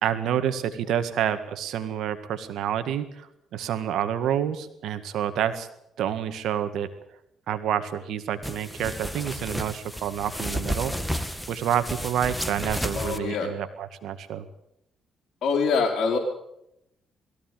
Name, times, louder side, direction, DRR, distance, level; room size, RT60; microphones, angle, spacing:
voice 1, 0.0-3.3 3.5-5.7 6.0-6.9 7.5-10.9 11.5-14.5, right 9 dB, 80° right, 9 dB, 1.8 m, -28 dB
sound 1, 8.4-13.2, equal, ahead, 1.7 m, -32 dB
voice 2, 12.9-13.5 15.4-16.2, left 5 dB, 60° left, -2 dB, 4.0 m, -24 dB
21.0 x 15.5 x 9.2 m, 0.80 s
cardioid pair, 90°, 0 cm